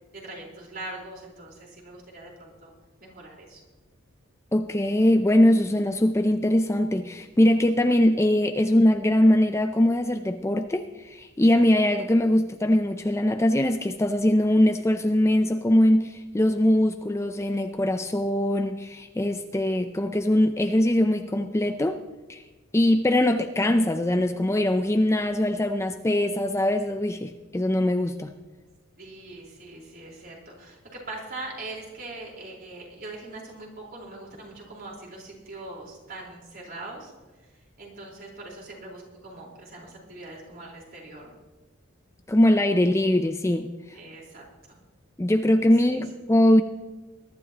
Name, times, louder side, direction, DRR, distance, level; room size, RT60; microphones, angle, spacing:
voice 1, 0.1-2.7 3.0-3.6 29.0-37.1 37.8-41.3 43.9-44.8 45.9-46.0, right 2 dB, 45° right, -2 dB, 4.3 m, -41 dB
voice 2, 4.5-22.0 22.3-22.4 22.7-28.3 42.3-43.7 45.2-46.6, left 1 dB, 15° left, 7 dB, 0.5 m, -22 dB
21.5 x 12.0 x 2.9 m, 1.2 s
head